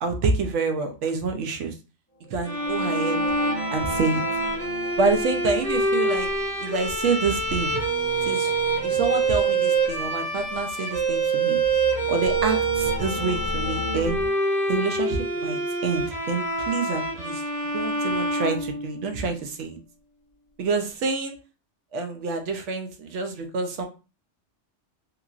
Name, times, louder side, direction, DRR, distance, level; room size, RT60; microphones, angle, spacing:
voice 1, 0.0-1.7 2.3-3.2 3.7-4.2 5.0-6.3 6.6-7.8 8.2-8.5 8.8-11.6 12.1-14.2 14.7-17.4 17.7-19.8 20.6-21.4 21.9-23.9, right 4 dB, 75° right, 6 dB, 0.9 m, -27 dB
sound 1, 2.2-14.3, equal, 20° left, 0.4 m, -37 dB
sound 2, 2.4-19.3, right 3 dB, 45° right, 1.1 m, -26 dB
2.9 x 2.5 x 2.3 m, 0.32 s
omnidirectional pair, 1.3 m